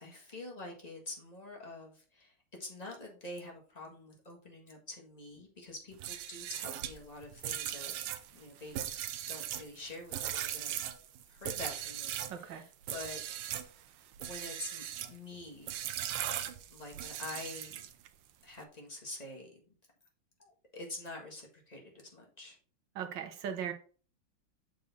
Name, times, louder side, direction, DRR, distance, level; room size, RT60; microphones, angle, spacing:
voice 1, 0.0-2.3 2.6-7.9 8.3-8.8 9.3-10.9 11.3-13.2 14.2-15.8 16.7-17.8 18.4-19.6 20.7-22.6, left 2 dB, 20° left, 1.5 m, -46 dB
sound 1, 5.9-12.4 12.8-13.7 14.1-15.2 15.7-18.1, right 11 dB, 80° right, 1.5 m, -39 dB
voice 2, 12.3-12.6 22.9-23.7, right 8 dB, 65° right, 1.5 m, -38 dB
6.7 x 4.8 x 4.1 m
omnidirectional pair, 2.4 m